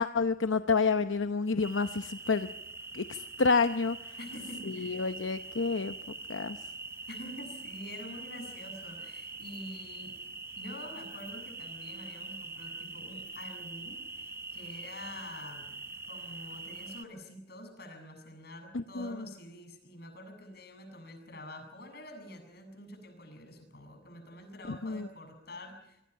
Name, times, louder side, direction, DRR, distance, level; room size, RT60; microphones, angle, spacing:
voice 1, 0.0-2.5 2.9-4.2 4.7-6.0 6.3-6.6 18.7-19.2 24.7-25.1, left 4 dB, 80° left, 9 dB, 0.8 m, -29 dB
sound 1, 1.6-17.0, right 3 dB, 15° right, 0.9 m, -44 dB
voice 2, 4.2-5.1 7.1-10.2 10.6-26.0, left 1 dB, 55° left, 6 dB, 7.6 m, -47 dB
26.5 x 24.5 x 5.7 m, 0.83 s
head